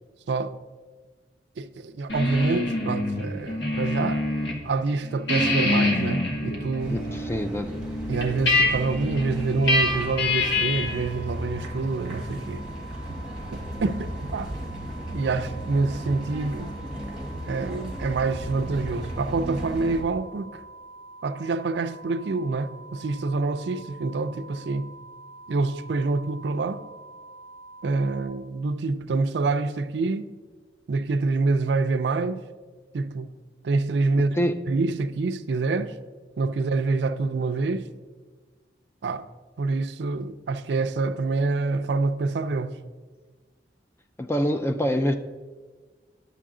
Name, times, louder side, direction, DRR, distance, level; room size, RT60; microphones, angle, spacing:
voice 1, 1.6-4.2 4.6-7.0 8.1-12.6 13.5-14.5 15.1-16.7 17.4-20.6 21.2-24.9 25.5-26.8 27.8-30.3 30.9-32.4 32.9-33.3 33.6-34.4 34.7-35.9 36.4-37.8 39.0-39.2 39.6-42.8, right 3 dB, 70° right, 0.4 m, -26 dB
sound 1, 2.1-4.6 4.9-11.1, left 2 dB, 90° left, 1.4 m, -26 dB
sound 2, 6.8-20.0, right 1 dB, 5° right, 1.1 m, -36 dB
voice 2, 6.9-7.8 34.3-34.5 44.2-45.2, equal, 15° left, 0.3 m, -25 dB
sound 3, 9.6-28.2, right 2 dB, 35° left, 2.0 m, -46 dB
10.0 x 6.7 x 3.7 m
head